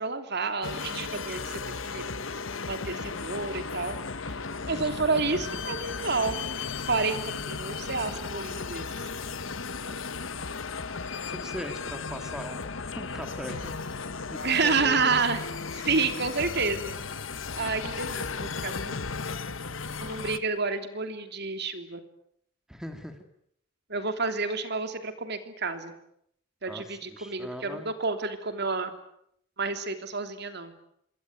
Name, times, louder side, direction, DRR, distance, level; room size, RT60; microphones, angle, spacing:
voice 1, 0.0-1.6 1.9-2.0 2.7-4.0 4.7-6.4 6.9-8.8 14.4-15.4 15.7-16.9 17.5-19.0 20.0-22.0 23.9-25.9 26.6-28.9 29.6-30.7, right 4 dB, 55° right, 8 dB, 3.1 m, -29 dB
sound 1, 0.6-20.4, left 4 dB, 85° left, 1.3 m, -35 dB
voice 2, 4.7-5.1 9.9-10.0 11.3-12.7 13.0-13.7 14.6-15.2 22.7-23.2 26.7-27.9, equal, 5° right, 6 dB, 2.6 m, -40 dB
26.5 x 22.5 x 9.5 m, 0.73 s
head